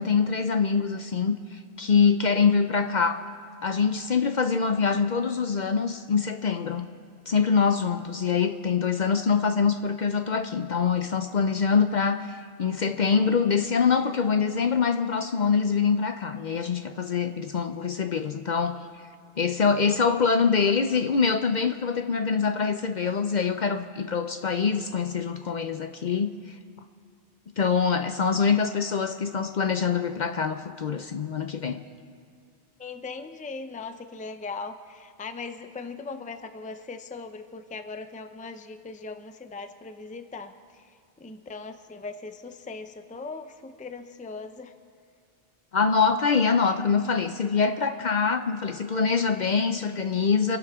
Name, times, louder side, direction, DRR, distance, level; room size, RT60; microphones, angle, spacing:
voice 1, 0.0-3.2 3.6-6.9 7.3-18.8 19.4-26.4 27.6-31.8 45.7-50.6, left 5 dB, 50° left, 8 dB, 0.7 m, -24 dB
voice 2, 32.8-40.9 41.2-44.7, left 4 dB, 10° left, 8 dB, 0.5 m, -39 dB
27.5 x 11.5 x 3.6 m, 2.2 s
omnidirectional pair, 1.1 m